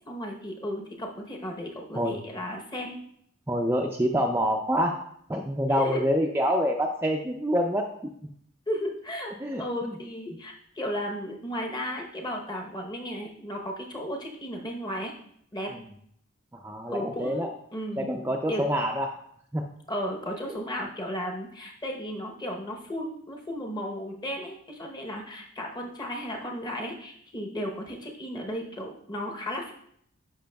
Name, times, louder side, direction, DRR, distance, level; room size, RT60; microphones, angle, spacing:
voice 1, 0.1-3.0 5.7-6.1 6.4-6.5 8.7-9.3 9.6-15.1 15.5-15.7 16.9-18.1 18.5-18.6 19.9-29.7, equal, 20° left, 1 dB, 0.8 m, -34 dB
voice 2, 3.5-5.0 5.3-7.9 9.4-9.9 15.7-15.8 16.5-17.5 18.0-19.1 19.5-19.6 20.5-20.6, equal, 10° right, 1 dB, 0.4 m, -26 dB
10.0 x 5.5 x 2.3 m, 0.69 s
head